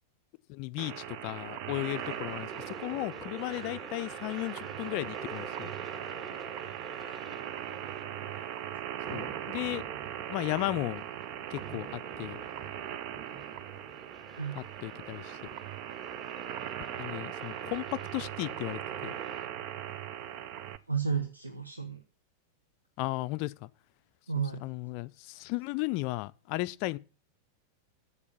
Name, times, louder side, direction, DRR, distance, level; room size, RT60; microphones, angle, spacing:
voice 1, 0.5-5.7 9.1-9.8 10.3-11.0 11.5-12.4 14.5-15.4 17.0-19.1 23.0-23.7 24.6-27.0, left 20 dB, 45° left, 0.4 m, -35 dB
sound 1, 0.8-20.8, right 10 dB, 40° right, 0.6 m, -40 dB
sound 2, 1.9-19.5, right 3 dB, 25° right, 2.0 m, -48 dB
voice 2, 7.0-7.3 14.4-14.7 20.9-22.0 24.3-24.6, right 6 dB, 80° right, 1.1 m, -33 dB
8.4 x 7.4 x 8.4 m
figure-of-eight pair, 90°, 0 cm